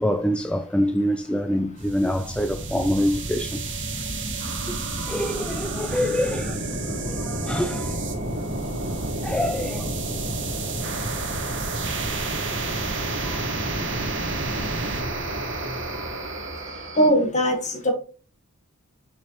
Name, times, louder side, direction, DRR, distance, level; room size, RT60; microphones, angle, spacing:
voice 1, 0.0-3.6 4.9-6.6 7.1-8.0 9.2-9.9 13.1-13.7 15.8-16.3, equal, 5° left, 0.3 m, -26 dB
sound 1, 1.8-17.1, right 2 dB, 55° right, 1.5 m, -29 dB
voice 2, 17.0-17.9, equal, 30° left, 1.8 m, -20 dB
6.4 x 5.6 x 3.0 m
head